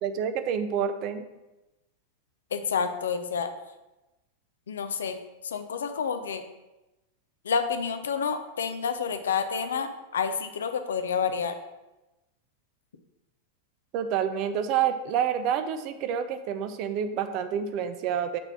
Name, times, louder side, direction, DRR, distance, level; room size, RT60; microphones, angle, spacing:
voice 1, 0.0-1.3 13.9-18.4, right 8 dB, 40° right, 9 dB, 0.5 m, -28 dB
voice 2, 2.5-3.5 4.7-6.4 7.4-11.6, left 6 dB, 65° left, 8 dB, 0.5 m, -29 dB
6.0 x 3.3 x 5.8 m, 1.0 s
figure-of-eight pair, 90°, 0 cm